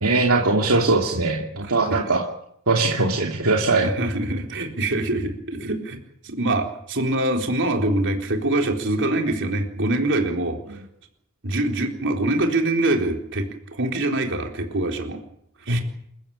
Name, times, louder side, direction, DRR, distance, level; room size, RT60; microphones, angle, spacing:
voice 1, 0.0-2.2 2.7-3.9 10.7-10.8 15.7-15.8, right 3 dB, 75° right, 0 dB, 2.6 m, -20 dB
voice 2, 1.6-2.0 3.8-10.8 11.4-15.2 15.7-15.8, right 2 dB, 55° right, 3 dB, 4.1 m, -24 dB
27.5 x 15.5 x 8.9 m, 0.71 s
head